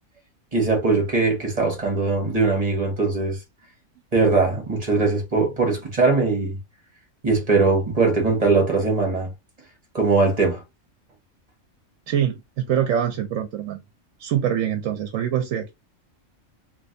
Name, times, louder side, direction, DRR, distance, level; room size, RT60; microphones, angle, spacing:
voice 1, 0.5-3.4 4.1-6.6 7.2-9.3 9.9-10.6, right 3 dB, 30° right, 1.3 m, -21 dB
voice 2, 12.1-13.8 14.2-15.7, right 9 dB, 75° right, 0.9 m, -24 dB
3.2 x 2.9 x 2.6 m
omnidirectional pair, 1.4 m